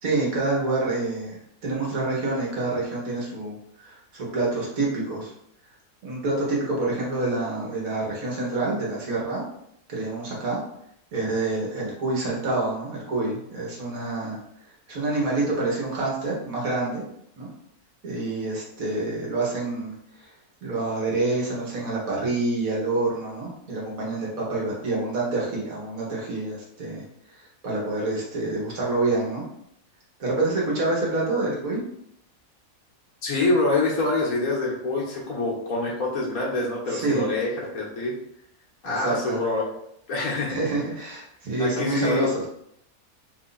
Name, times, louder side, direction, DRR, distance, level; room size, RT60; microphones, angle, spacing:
voice 1, 0.0-3.6 3.8-5.3 6.0-9.4 9.9-10.6 11.1-14.4 14.9-17.0 17.4-17.5 18.0-20.3 20.6-27.0 27.4-29.4 30.2-31.8 36.9-37.3 38.8-39.4 40.5-42.4, right 2 dB, 70° right, -4 dB, 1.8 m, -27 dB
voice 2, 33.2-38.1 38.8-39.6 40.1-40.6 41.6-42.3, left 2 dB, 80° left, -4 dB, 1.7 m, -25 dB
4.2 x 2.8 x 4.0 m, 0.73 s
omnidirectional pair, 1.5 m